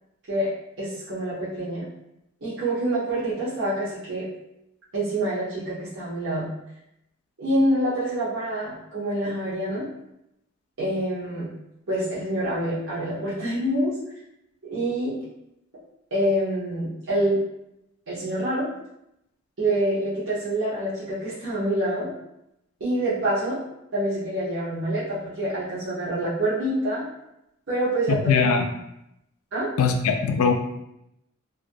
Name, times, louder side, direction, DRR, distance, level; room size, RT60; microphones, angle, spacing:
voice 1, 0.8-1.9 2.4-4.2 4.9-6.5 7.4-9.9 10.8-11.5 11.9-13.9 14.6-15.2 16.1-17.4 18.1-18.7 19.6-22.1 22.8-23.6 23.9-27.1 27.7-28.5 29.5-29.7, right 1 dB, 60° right, -11 dB, 0.8 m, -26 dB
voice 2, 28.1-28.7 29.8-30.5, left 5 dB, 85° left, 5 dB, 0.4 m, -21 dB
2.4 x 2.2 x 2.6 m, 0.83 s
head